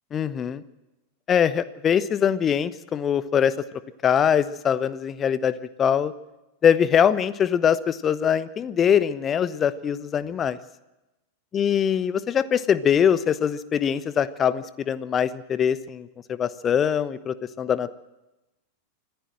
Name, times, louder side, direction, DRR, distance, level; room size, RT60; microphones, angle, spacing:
voice 1, 0.1-0.6 1.3-3.5 4.0-6.1 6.6-10.6 11.5-17.9, left 8 dB, 25° left, 16 dB, 1.0 m, -23 dB
25.0 x 15.5 x 7.7 m, 0.97 s
figure-of-eight pair, 90°, 0 cm